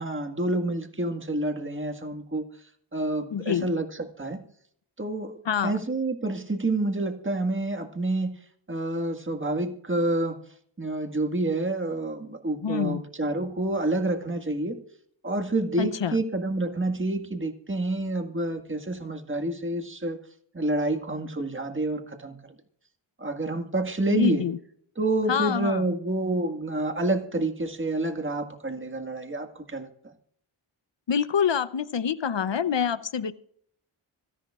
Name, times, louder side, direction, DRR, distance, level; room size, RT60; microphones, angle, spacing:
voice 1, 0.0-2.4 2.9-3.9 4.2-4.4 5.0-5.3 5.6-8.4 8.7-10.4 10.8-14.8 15.2-20.2 20.5-22.4 23.2-24.4 25.0-29.9, right 2 dB, 25° right, 5 dB, 1.8 m, -28 dB
voice 2, 3.3-3.7 5.5-5.8 12.6-13.0 15.8-16.2 24.1-24.6 25.3-25.8 31.1-33.3, left 7 dB, 60° left, 15 dB, 0.8 m, -26 dB
25.5 x 11.0 x 2.5 m, 0.63 s
cardioid pair, 40°, 50 cm